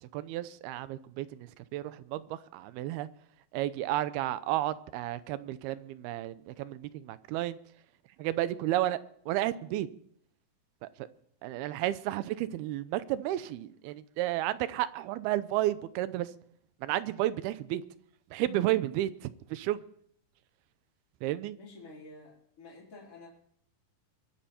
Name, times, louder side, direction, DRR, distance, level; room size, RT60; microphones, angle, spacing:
voice 1, 0.0-3.1 3.5-7.6 8.2-9.0 9.3-9.9 10.8-11.1 11.4-16.3 16.8-17.8 18.3-19.1 19.5-19.8 21.2-21.6, right 14 dB, 85° right, 2.7 m, -32 dB
voice 2, 21.6-23.3, left 3 dB, 40° left, 4.4 m, -50 dB
23.5 x 10.0 x 4.4 m
omnidirectional pair, 4.4 m